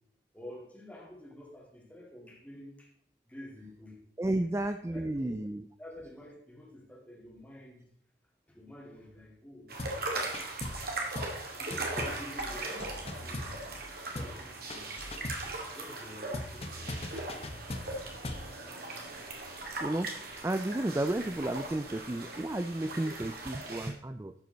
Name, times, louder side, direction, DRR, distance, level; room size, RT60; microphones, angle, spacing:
voice 1, 0.3-2.9 3.2-4.0 4.9-5.3 5.8-7.9 8.5-10.6 10.9-11.3 11.6-13.7 14.0-15.2 15.7-17.1, left 1 dB, 5° left, -1 dB, 2.2 m, -49 dB
voice 2, 4.2-5.6 19.8-20.1 20.4-24.3, right 1 dB, 15° right, 9 dB, 0.3 m, -32 dB
sound 1, 9.7-23.9, right 2 dB, 50° right, 2.3 m, -39 dB
sound 2, 9.8-10.1 10.3-10.9 11.2-11.4 11.7-13.9 14.2-14.4 14.7-15.5 16.3-18.5, left 1 dB, 30° left, 0.9 m, -40 dB
12.5 x 8.1 x 4.0 m, 0.71 s
head